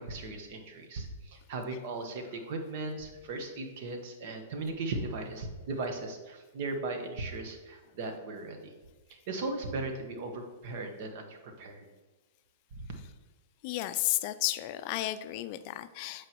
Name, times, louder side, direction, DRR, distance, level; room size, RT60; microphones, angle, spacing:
voice 1, 0.0-8.7 9.1-11.9, right 2 dB, 55° right, 4 dB, 1.2 m, -37 dB
voice 2, 13.6-16.3, left 15 dB, 45° left, 12 dB, 0.4 m, -33 dB
7.5 x 4.7 x 3.0 m, 1.2 s
hypercardioid pair, 130°, 0 cm